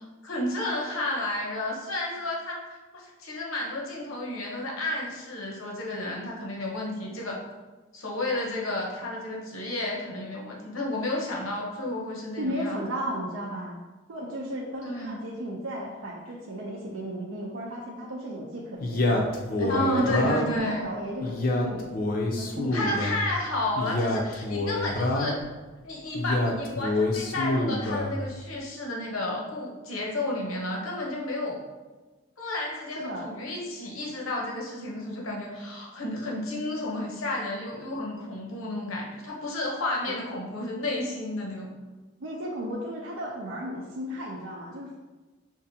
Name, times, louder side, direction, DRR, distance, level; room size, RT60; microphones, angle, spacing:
voice 1, 0.0-2.6 2.9-7.4 7.9-12.8 14.8-15.3 19.7-20.8 22.7-25.4 25.8-31.6 32.4-41.7, left 1 dB, 90° left, -1 dB, 0.8 m, -31 dB
voice 2, 12.4-13.8 14.1-19.2 19.6-21.9 22.4-22.9 33.0-33.3 42.2-45.0, equal, 80° right, -3 dB, 0.5 m, -34 dB
Male speech man speaking, 18.8-20.6 21.2-23.2 23.8-25.5 26.2-28.1, left 2 dB, 45° left, 0.4 m, -27 dB
5.3 x 2.5 x 2.7 m, 1.2 s
head